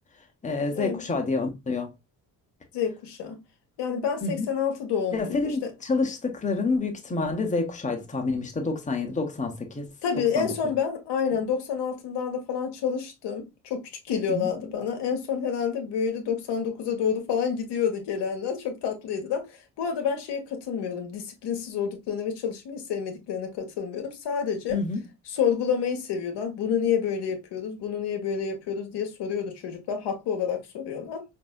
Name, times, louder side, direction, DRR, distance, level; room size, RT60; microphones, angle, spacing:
voice 1, 0.4-1.9 4.2-4.5 5.1-9.9 10.3-10.5 14.3-14.5 24.7-25.0, left 3 dB, 15° left, 1.0 m, -28 dB
voice 2, 2.7-3.4 3.8-5.7 10.0-24.8 25.3-31.2, left 7 dB, 55° left, 1.1 m, -29 dB
5.2 x 2.7 x 2.3 m
figure-of-eight pair, 45°, 50 cm